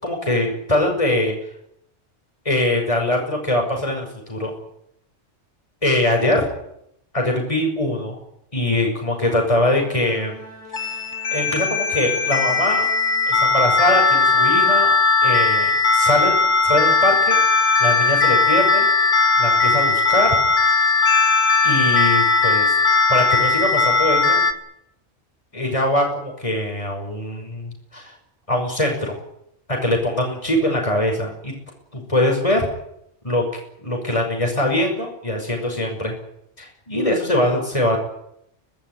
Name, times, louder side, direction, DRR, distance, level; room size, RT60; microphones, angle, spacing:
voice 1, 0.0-1.3 2.4-4.5 5.8-6.4 7.1-8.2 8.5-10.4 11.3-12.9 13.3-14.9 15.2-16.4 16.6-17.4 17.8-18.9 19.4-20.4 21.6-22.7 23.1-24.4 25.5-28.1 28.5-29.2 29.7-31.5 31.9-32.7 33.2-33.4 33.8-36.1 36.6-38.0, left 1 dB, 25° left, 1 dB, 6.0 m, -22 dB
Bowed string instrument, 9.3-13.9, right 2 dB, 55° right, 7.7 m, -43 dB
sound 1, 10.7-24.5, left 4 dB, 80° left, 2.5 m, -18 dB
23.5 x 19.0 x 9.3 m, 0.78 s
omnidirectional pair, 1.3 m